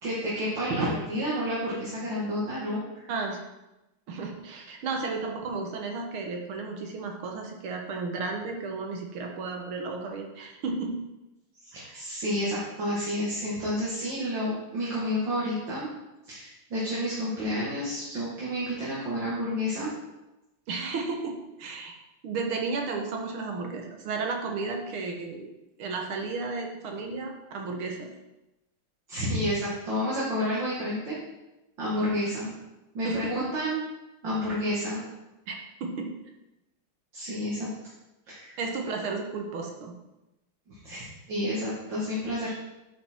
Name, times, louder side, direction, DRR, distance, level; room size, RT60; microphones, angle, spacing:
voice 1, 0.0-3.1 11.6-15.9 16.3-19.9 29.1-31.2 31.8-32.5 32.9-33.8 34.2-35.0 37.1-37.7 38.3-38.5 40.7-42.5, equal, 60° right, -8 dB, 2.7 m, -30 dB
voice 2, 3.1-3.4 4.1-10.9 11.7-12.0 20.7-22.0 22.2-25.5 25.8-28.1 33.0-33.5 35.5-35.6 35.8-36.1 38.6-39.9, right 4 dB, 90° right, 2 dB, 2.1 m, -33 dB
8.7 x 5.8 x 4.5 m, 0.97 s
omnidirectional pair, 2.3 m